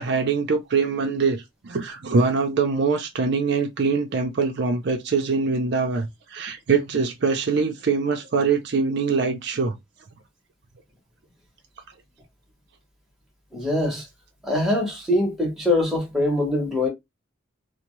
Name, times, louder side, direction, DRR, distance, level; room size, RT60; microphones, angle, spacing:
voice 1, 0.0-9.8, right 4 dB, 55° right, 0.5 m, -23 dB
voice 2, 13.5-14.0 14.4-16.9, left 1 dB, ahead, 0.8 m, -23 dB
2.7 x 2.0 x 3.0 m
head